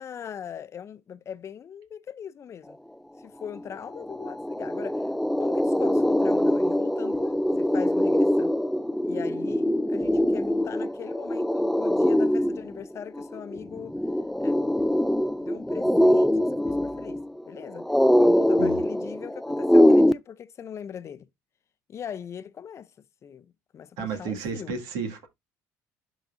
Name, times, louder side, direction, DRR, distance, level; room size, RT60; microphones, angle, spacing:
voice 1, 0.0-2.8 3.2-5.1 5.4-8.6 9.0-14.0 14.4-14.6 15.4-17.9 18.2-21.3 21.9-22.9 23.2-24.7, left 8 dB, 45° left, 0.6 m, -40 dB
sound 1, 3.6-3.7 3.9-20.1, left 1 dB, 5° left, 0.3 m, -23 dB
voice 2, 24.0-25.3, right 4 dB, 80° right, 2.1 m, -32 dB
11.5 x 4.0 x 2.6 m
supercardioid pair, 85°, 7 cm